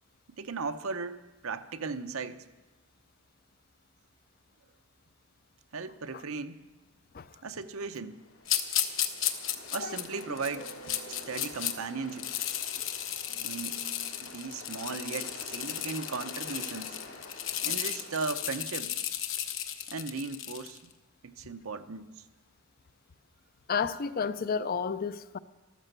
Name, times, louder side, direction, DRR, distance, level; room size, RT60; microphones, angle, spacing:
voice 1, 0.4-2.4 5.7-6.6 7.4-8.2 9.7-10.7 11.3-12.3 13.4-13.8 14.2-17.0 17.6-19.0 19.9-20.8 21.2-22.2, right 4 dB, 75° right, 0.8 m, -37 dB
Ocean, 8.0-19.0, left 1 dB, 85° left, 2.7 m, -48 dB
sound 1, 8.5-11.7 12.1-20.8, left 10 dB, 60° left, 1.1 m, -34 dB
voice 2, 23.7-25.4, left 6 dB, 45° left, 0.5 m, -32 dB
13.5 x 13.5 x 6.8 m
head